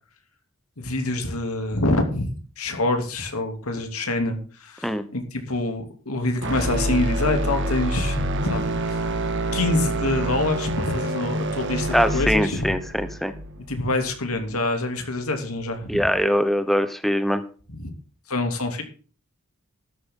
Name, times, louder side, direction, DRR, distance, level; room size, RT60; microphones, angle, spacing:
voice 1, 0.8-9.0 9.5-12.7 13.6-16.0 17.7-17.9 18.3-18.8, left 2 dB, 85° left, 5 dB, 2.8 m, -26 dB
sound 1, 6.4-14.6, right 1 dB, 55° right, 1.8 m, -27 dB
voice 2, 11.9-13.3 15.9-17.4, equal, ahead, 10 dB, 1.0 m, -22 dB
13.5 x 12.0 x 3.8 m, 0.40 s
head